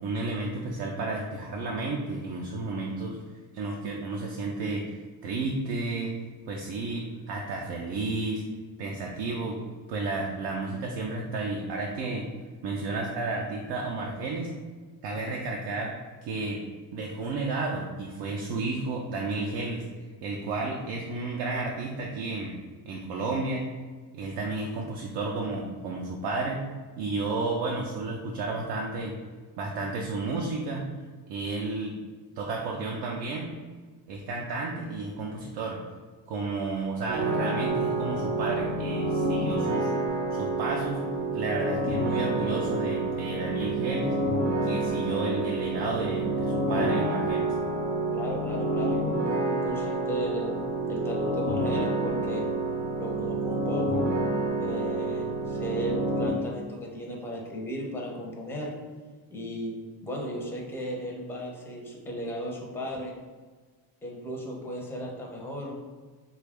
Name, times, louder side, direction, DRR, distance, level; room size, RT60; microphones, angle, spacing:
voice 1, 0.0-3.2 3.5-6.1 6.5-8.4 8.8-9.6 9.9-12.3 12.6-14.5 15.0-15.9 16.2-16.6 16.9-19.8 20.2-22.6 22.9-23.7 24.1-26.6 27.0-29.1 29.6-30.8 31.3-32.0 32.4-33.5 34.1-35.8 36.3-39.9 40.3-41.0 41.3-44.2 44.6-47.5, right 3 dB, 75° right, -1 dB, 0.6 m, -32 dB
sound 1, 37.1-56.3, right 2 dB, 40° right, 0.7 m, -28 dB
voice 2, 48.1-52.5 53.0-54.1 54.6-58.7 59.3-59.7 60.0-63.1 64.0-65.8, equal, 5° left, -2 dB, 0.4 m, -36 dB
3.3 x 2.3 x 3.5 m, 1.4 s
cardioid pair, 155°, 42 cm